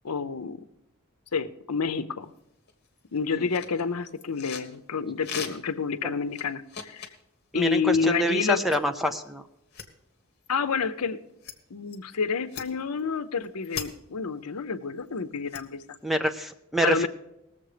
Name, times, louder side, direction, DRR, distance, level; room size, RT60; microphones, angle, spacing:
voice 1, 0.0-0.7 1.3-2.3 3.1-7.1 7.5-8.6 10.5-11.2 11.7-15.8 16.8-17.1, left 5 dB, 90° left, 13 dB, 0.7 m, -29 dB
sound 1, 2.4-2.5 2.7-4.8 5.2-5.8 6.3-7.2 8.7-8.8 9.1-9.2 9.7-9.9 10.4-10.5 11.4-11.6 11.9-12.0 12.5-13.0 13.4-13.9 15.0-16.0, left 7 dB, 45° left, 1.3 m, -39 dB
voice 2, 7.5-9.4 16.0-17.1, equal, ahead, 7 dB, 0.6 m, -26 dB
19.0 x 7.3 x 5.0 m, 0.87 s
head